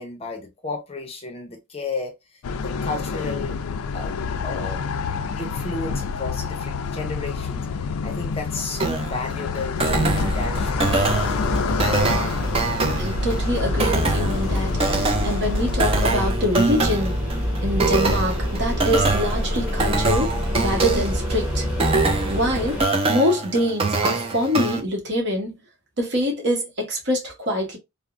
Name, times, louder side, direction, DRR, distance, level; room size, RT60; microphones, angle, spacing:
voice 1, 0.0-2.1 2.6-3.6 3.9-4.8 5.4-7.7 8.0-11.1, left 3 dB, 25° left, 0.6 m, -32 dB
sound 1, 2.4-16.3, left 5 dB, 80° left, 0.4 m, -28 dB
sound 2, 8.8-24.8, right 3 dB, 25° right, 0.4 m, -24 dB
sound 3, 9.8-22.8, equal, 5° right, 1.0 m, -26 dB
voice 2, 12.8-21.7 22.3-22.8 23.1-25.6 26.0-27.8, left 1 dB, 55° right, 1.0 m, -25 dB
3.4 x 2.0 x 2.4 m
head